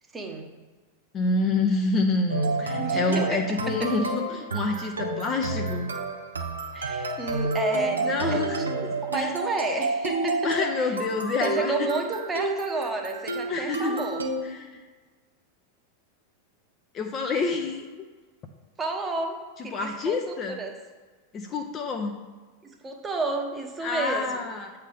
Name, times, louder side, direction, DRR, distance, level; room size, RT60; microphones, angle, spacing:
voice 1, 0.1-0.5 2.8-3.4 6.7-8.4 9.0-11.0 11.4-14.2 18.8-19.4 19.6-20.2 20.6-20.7 22.6-24.4, right 3 dB, 15° right, 2 dB, 1.1 m, -30 dB
voice 2, 1.1-5.9 8.0-9.3 10.4-11.9 13.5-14.0 14.4-14.8 16.9-18.1 19.6-20.6 21.3-22.2 23.8-24.7, left 3 dB, 30° left, 3 dB, 0.7 m, -28 dB
sound 1, 2.3-14.4, right 2 dB, 75° right, 0.8 m, -30 dB
8.5 x 3.4 x 5.4 m, 1.4 s
figure-of-eight pair, 90°, 0 cm